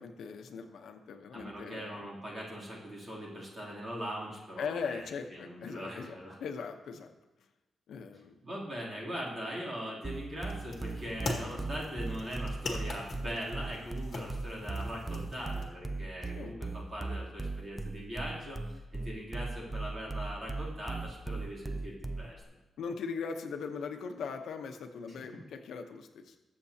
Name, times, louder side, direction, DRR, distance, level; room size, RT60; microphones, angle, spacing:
voice 1, 0.0-2.1 4.6-7.1 7.9-8.4 16.3-16.6 22.8-26.4, left 5 dB, 80° left, 5 dB, 0.9 m, -40 dB
voice 2, 1.3-5.1 5.3-6.4 8.4-18.6 18.9-22.4, equal, 25° right, -5 dB, 3.0 m, -41 dB
sound 1, 10.0-22.4, right 3 dB, 10° right, 0.4 m, -38 dB
sound 2, 10.4-15.6, left 2 dB, 40° left, 1.7 m, -41 dB
21.0 x 7.5 x 2.8 m, 1.1 s
wide cardioid pair, 175°, 0 cm